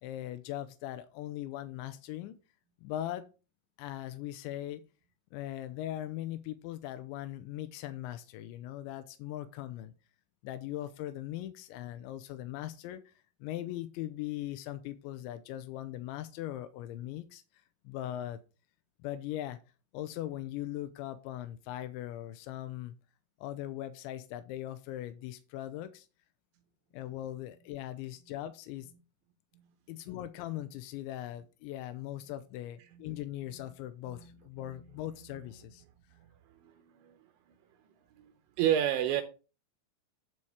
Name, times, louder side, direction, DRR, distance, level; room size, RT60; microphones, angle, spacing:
voice 1, 0.0-2.4 2.8-3.3 3.8-4.8 5.3-9.9 10.4-13.1 13.4-17.4 17.8-18.4 19.0-19.6 19.9-23.0 23.4-26.1 26.9-28.9 29.9-35.8, left 13 dB, 85° left, 2.7 m, -40 dB
voice 2, 34.1-34.9 36.2-36.3 36.6-37.2 38.2-38.3 38.6-39.2, right 10 dB, 75° right, 2.9 m, -31 dB
11.0 x 4.3 x 4.9 m
omnidirectional pair, 5.9 m